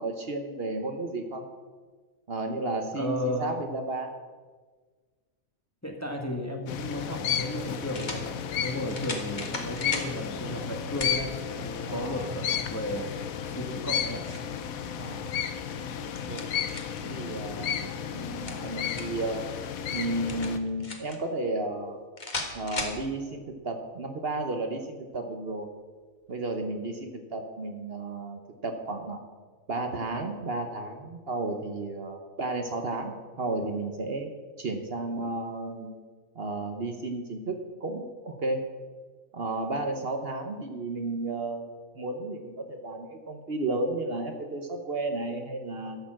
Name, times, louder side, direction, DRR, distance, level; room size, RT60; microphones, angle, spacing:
voice 1, 0.0-1.4 2.3-4.1 11.9-12.3 15.0-15.3 16.0-16.5 17.0-19.4 19.9-22.0 22.5-25.7 26.3-29.2 29.7-34.3 34.6-35.9 36.3-38.6 39.3-46.0, right 2 dB, 50° right, 5 dB, 1.1 m, -33 dB
voice 2, 2.9-3.6 5.8-13.1 13.4-14.4, left 1 dB, 15° left, 3 dB, 1.1 m, -34 dB
sound 1, 6.6-6.7 7.9-8.2 8.9-10.1 11.0-11.2 11.7-11.8 13.7-14.5 15.9-17.0 18.2-19.2 20.3-21.2 22.2-23.0, left 2 dB, 35° left, 1.6 m, -36 dB
sound 2, 6.7-20.6, left 8 dB, 85° left, 1.2 m, -33 dB
13.0 x 6.9 x 7.4 m, 1.5 s
omnidirectional pair, 1.4 m